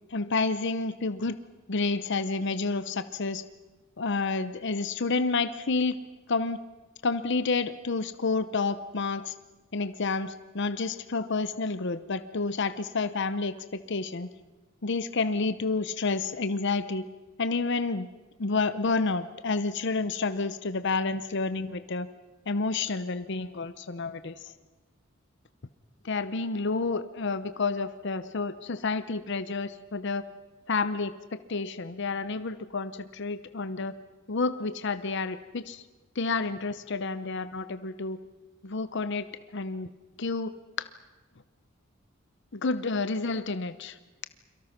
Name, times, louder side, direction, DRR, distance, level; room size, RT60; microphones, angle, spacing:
voice 1, 0.1-1.4 1.7-3.4 4.0-6.0 6.3-6.6 7.0-9.3 9.7-14.3 14.8-17.0 17.4-18.1 18.4-22.1 22.5-24.5 26.0-30.2 30.7-33.9 34.3-35.8 36.1-38.2 38.6-39.3 39.5-39.9 40.2-40.9 42.5-44.0, left 3 dB, 60° left, 12 dB, 0.8 m, -29 dB
29.5 x 23.5 x 5.9 m, 1.2 s
head